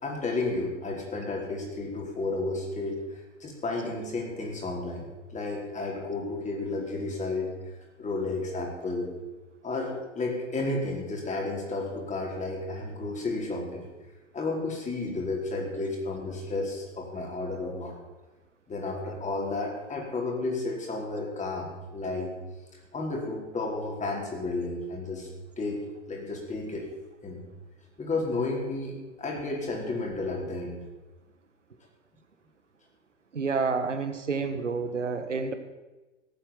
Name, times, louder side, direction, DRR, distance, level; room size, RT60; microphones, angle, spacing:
voice 1, 0.0-3.0 3.4-7.5 8.0-9.1 9.6-13.8 14.3-17.9 18.7-22.3 22.9-25.3 25.6-26.9 27.2-27.4 28.0-30.8, left 2 dB, 20° left, 0 dB, 4.7 m, -32 dB
voice 2, 33.3-35.5, right 4 dB, 80° right, 9 dB, 1.4 m, -29 dB
18.0 x 9.1 x 7.3 m, 1.1 s
figure-of-eight pair, 90°, 36 cm